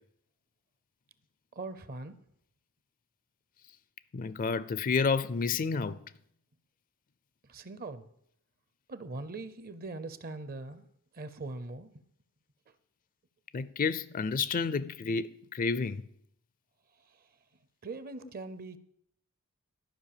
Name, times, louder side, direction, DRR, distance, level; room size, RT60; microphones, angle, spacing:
voice 1, 1.5-2.2 7.4-8.1 8.9-10.9 11.1-11.9 17.1-17.3 17.8-18.8, right 3 dB, 40° right, 0.6 m, -41 dB
voice 2, 4.1-6.0 13.5-16.0, left 5 dB, 40° left, 0.4 m, -30 dB
12.5 x 5.4 x 6.7 m
head